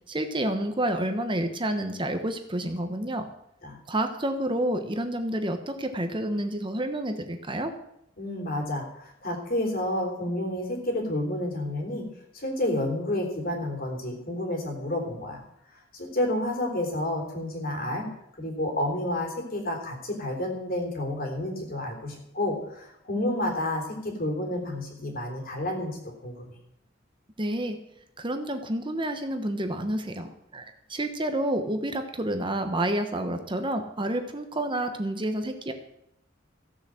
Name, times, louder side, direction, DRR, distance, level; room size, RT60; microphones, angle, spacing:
voice 1, 0.1-3.3 3.9-7.7 27.4-27.8 28.2-30.6 30.9-35.7, right 1 dB, 25° right, 7 dB, 1.1 m, -29 dB
voice 2, 8.2-12.0 12.3-15.4 15.9-18.1 18.4-26.5, left 1 dB, 50° left, 2 dB, 3.6 m, -30 dB
15.0 x 7.2 x 7.7 m, 0.78 s
head